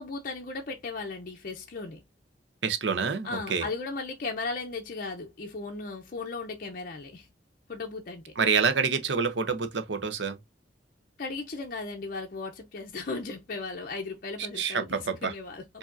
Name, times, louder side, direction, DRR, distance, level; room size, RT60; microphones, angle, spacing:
voice 1, 0.0-2.0 3.2-7.3 7.7-8.2 11.2-15.8, left 3 dB, 50° left, 0.6 m, -36 dB
voice 2, 2.6-3.7 8.4-10.4 14.6-15.3, right 5 dB, 75° right, 0.7 m, -27 dB
4.8 x 2.7 x 2.6 m
head